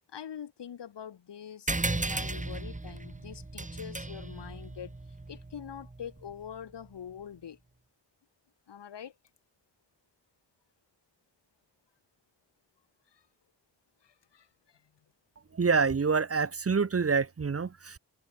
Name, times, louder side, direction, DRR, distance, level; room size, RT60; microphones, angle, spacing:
voice 1, 0.1-5.0 5.3-7.6 8.7-9.1 13.1-13.2 14.0-14.8, left 8 dB, 80° left, 4.1 m, -44 dB
sound 1, 1.7-6.6, right 2 dB, 20° right, 1.7 m, -36 dB
voice 2, 15.5-18.0, right 5 dB, 35° right, 1.0 m, -27 dB
cardioid pair, 45°, 41 cm